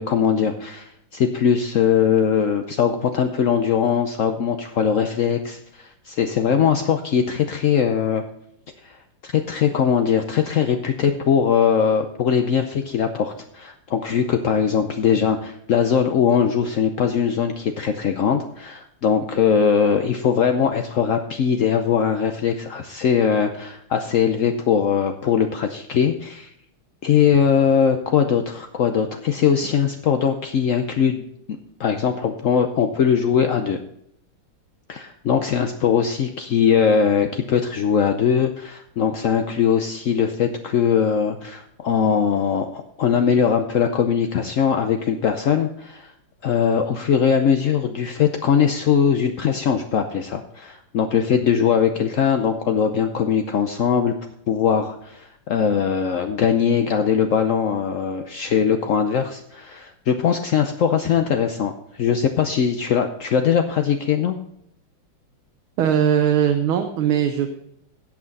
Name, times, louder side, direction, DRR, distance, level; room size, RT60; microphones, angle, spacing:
voice 1, 0.0-8.2 8.8-9.0 9.2-26.5 27.0-33.8 34.9-46.1 46.4-54.1 54.5-64.4, left 7 dB, 75° left, 6 dB, 0.7 m, -21 dB
voice 2, 65.8-67.6, right 9 dB, 90° right, 6 dB, 1.7 m, -20 dB
17.0 x 6.0 x 4.0 m, 0.74 s
omnidirectional pair, 2.2 m